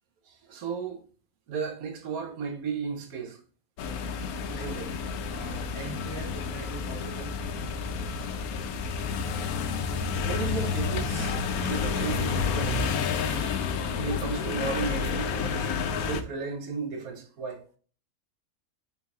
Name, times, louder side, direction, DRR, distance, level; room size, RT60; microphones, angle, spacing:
voice 1, 0.2-1.1 1.5-3.4 4.5-5.0 10.2-13.6 13.9-15.7 16.0-17.6, right 5 dB, 80° right, 1.3 m, -35 dB
sound 1, 3.8-16.2, left 5 dB, 85° left, 1.1 m, -30 dB
voice 2, 5.3-7.8, right 2 dB, 20° right, 1.1 m, -42 dB
4.0 x 4.0 x 2.3 m
omnidirectional pair, 1.5 m